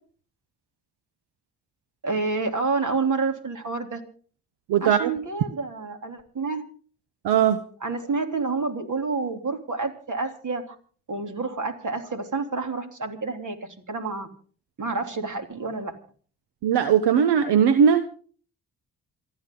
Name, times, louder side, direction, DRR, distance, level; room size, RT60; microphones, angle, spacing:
voice 1, 2.0-4.0 4.8-6.6 7.8-10.7 11.1-14.3 14.8-15.9, right 4 dB, 45° right, 5 dB, 3.3 m, -29 dB
voice 2, 4.7-5.1 7.2-7.6 16.6-18.1, right 8 dB, 70° right, 12 dB, 1.1 m, -19 dB
27.5 x 11.0 x 3.8 m, 0.43 s
hypercardioid pair, 40°, 42 cm